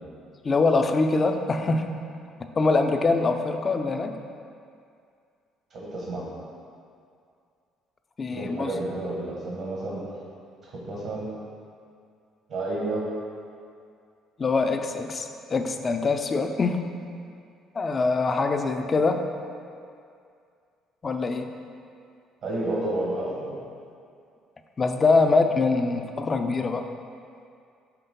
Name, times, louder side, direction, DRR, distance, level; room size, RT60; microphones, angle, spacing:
voice 1, 0.4-1.9 2.6-4.2 8.2-8.7 14.4-16.8 17.7-19.2 21.0-21.5 24.8-26.9, left 3 dB, 35° left, 6 dB, 0.5 m, -23 dB
voice 2, 5.7-6.2 8.3-10.0 10.8-11.3 12.5-13.0 22.4-23.6, right 2 dB, 65° right, -6 dB, 1.4 m, -30 dB
5.9 x 3.6 x 5.3 m, 2.3 s
supercardioid pair, 75°, 0 cm